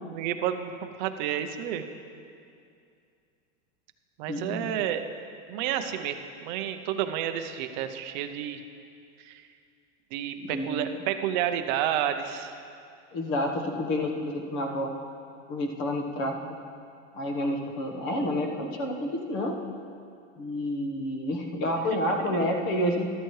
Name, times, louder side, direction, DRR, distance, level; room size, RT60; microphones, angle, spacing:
voice 1, 0.0-1.8 4.2-5.0 5.5-8.6 9.2-9.4 10.1-12.6 22.2-22.5, right 10 dB, 40° right, 7 dB, 0.6 m, -30 dB
voice 2, 4.3-4.7 10.4-10.9 13.1-14.9 15.5-16.3 17.1-19.5 20.4-23.1, left 1 dB, 30° left, 2 dB, 1.1 m, -29 dB
13.5 x 13.0 x 3.2 m, 2.4 s
supercardioid pair, 170°, 38 cm